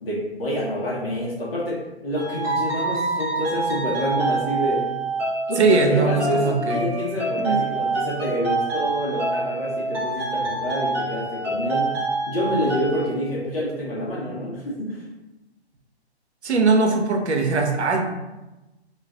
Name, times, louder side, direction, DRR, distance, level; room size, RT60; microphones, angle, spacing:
voice 1, 0.0-4.9 5.5-12.0 12.3-15.0, equal, 60° left, -6 dB, 1.0 m, -27 dB
sound 1, 2.1-13.1, right 3 dB, 5° right, 0.5 m, -26 dB
voice 2, 5.6-6.9 7.4-7.6 16.4-18.0, right 3 dB, 80° right, 3 dB, 0.7 m, -20 dB
2.5 x 2.4 x 3.4 m, 1.0 s
figure-of-eight pair, 135°, 33 cm